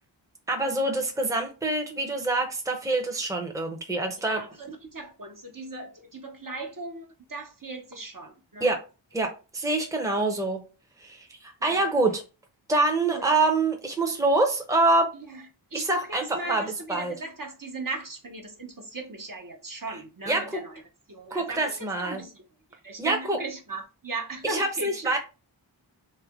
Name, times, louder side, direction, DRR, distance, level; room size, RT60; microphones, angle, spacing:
voice 1, 0.5-4.4 8.6-8.8 9.1-10.6 11.0-12.2 12.7-15.1 15.7-16.6 16.9-17.1 20.3-20.4 21.3-22.2 23.0-23.4 24.5-25.2, right 2 dB, 5° right, 0.8 m, -25 dB
voice 2, 4.3-8.7 11.6-11.8 13.0-13.2 15.1-20.8 21.1-22.4 22.7-25.1, right 2 dB, 45° right, 0.9 m, -38 dB
3.3 x 2.8 x 3.6 m
wide cardioid pair, 50°, 45 cm